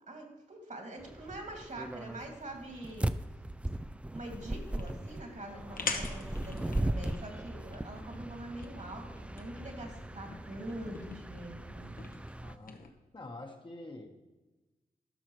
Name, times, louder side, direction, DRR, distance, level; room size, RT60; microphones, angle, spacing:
voice 1, 0.1-3.1 4.1-11.9, right 1 dB, 50° right, 3 dB, 2.1 m, -44 dB
sound 1, 1.0-12.6, right 1 dB, 10° right, 0.3 m, -39 dB
sound 2, 4.4-12.9, left 4 dB, 65° left, 1.0 m, -45 dB
voice 2, 5.5-5.9 12.4-12.9 13.1-14.1, left 2 dB, 30° left, 3 dB, 1.1 m, -47 dB
13.0 x 5.6 x 3.1 m, 1.1 s
cardioid pair, 55°, 16 cm